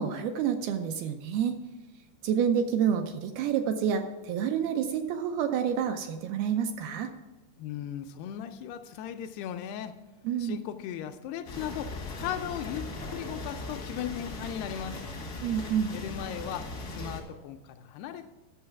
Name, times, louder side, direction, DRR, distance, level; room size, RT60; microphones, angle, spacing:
voice 1, 0.0-1.6 2.2-7.1 10.2-10.6 15.4-15.9, right 8 dB, 80° right, 6 dB, 2.3 m, -28 dB
voice 2, 7.6-9.9 10.4-15.0 15.9-16.7 17.0-18.3, left 10 dB, 80° left, 7 dB, 2.5 m, -37 dB
sound 1, 11.4-17.2, left 2 dB, 60° left, 1.0 m, -39 dB
11.0 x 7.0 x 5.8 m, 1.1 s
omnidirectional pair, 4.8 m